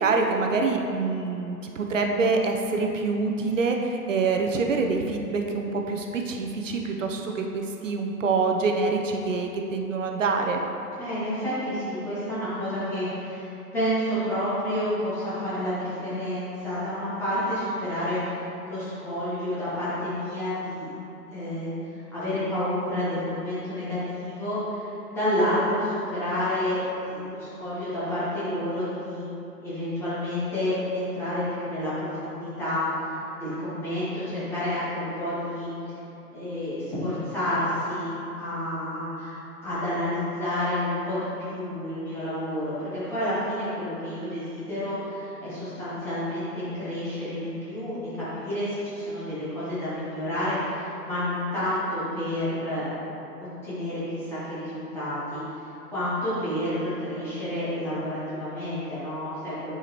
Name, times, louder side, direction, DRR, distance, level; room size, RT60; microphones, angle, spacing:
voice 1, 0.0-10.6, right 4 dB, 55° right, 2 dB, 0.7 m, -26 dB
voice 2, 11.0-18.3 18.6-20.9 21.3-29.2 29.6-35.7 36.3-52.9 53.6-55.4 55.9-59.8, left 1 dB, 5° left, -12 dB, 0.5 m, -29 dB
8.1 x 4.9 x 2.9 m, 2.9 s
figure-of-eight pair, 115°, 48 cm